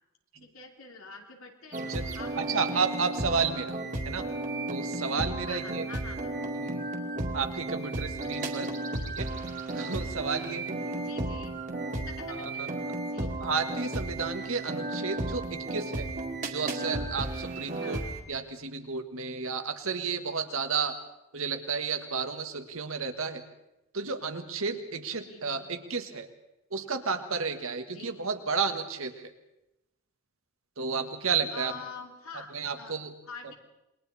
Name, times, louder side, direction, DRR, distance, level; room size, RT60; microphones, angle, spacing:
voice 1, 0.4-1.8 2.1-2.8 5.5-6.6 10.4-10.6 10.9-11.5 12.0-13.3 17.8-18.0 25.2-25.7 27.9-28.1 31.5-32.9 33.2-33.5, left 5 dB, 75° left, 2 dB, 3.1 m, -46 dB
sound 1, 1.7-18.2, right 2 dB, 35° right, 2.3 m, -34 dB
voice 2, 1.8-2.1 2.4-4.3 4.7-5.9 6.6-6.9 7.3-8.7 9.1-9.3 9.7-11.0 12.3-12.7 13.2-16.1 16.5-21.0 21.3-23.4 23.9-26.3 26.7-29.3 30.8-31.7 32.5-33.1, right 5 dB, 70° right, 6 dB, 1.8 m, -32 dB
27.5 x 22.5 x 4.3 m, 0.93 s
head